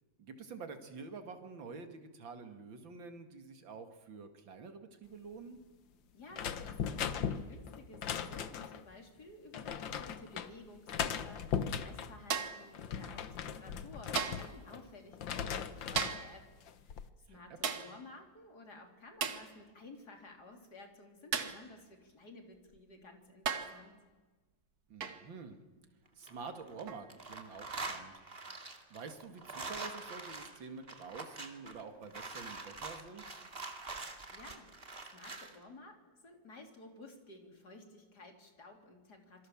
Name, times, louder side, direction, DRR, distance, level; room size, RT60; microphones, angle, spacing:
voice 1, 0.2-5.6 17.3-17.4 24.9-25.6 26.2-28.2 28.9-33.4, right 4 dB, 80° right, 7 dB, 2.8 m, -48 dB
voice 2, 6.1-16.4 16.8-24.0 34.1-39.5, left 2 dB, 55° left, 4 dB, 3.8 m, -54 dB
sound 1, 6.3-8.8 9.5-10.5 10.9-12.1 12.6-14.8 15.1-16.2 16.7-17.1, left 8 dB, 75° left, 1.9 m, -38 dB
sound 2, 12.3-12.7 14.2-14.6 16.0-16.4 17.6-18.0 19.2-19.5 21.3-21.7 22.7-22.8 23.5-23.8 25.0-25.3 26.9-27.1, right 6 dB, 55° right, 1.9 m, -36 dB
sound 3, 26.1-26.8 27.1-35.5, right 3 dB, 30° right, 2.4 m, -44 dB
27.0 x 23.5 x 7.3 m, 1.3 s
omnidirectional pair, 2.1 m